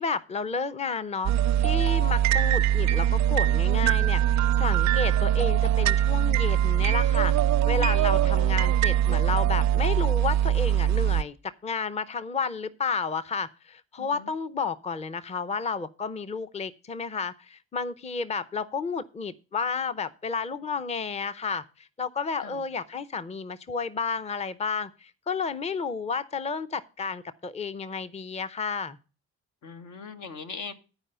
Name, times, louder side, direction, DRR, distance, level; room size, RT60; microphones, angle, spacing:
voice 1, 0.0-1.3 1.6-29.0, left 5 dB, 20° left, 13 dB, 0.6 m, -31 dB
sound 1, 1.2-11.2, right 11 dB, 65° right, 0.4 m, -22 dB
voice 2, 7.8-8.3 14.0-14.3 22.4-22.6 29.6-30.7, left 5 dB, 75° left, 8 dB, 1.5 m, -41 dB
11.5 x 4.8 x 6.7 m, 0.34 s
cardioid pair, 90°, 30 cm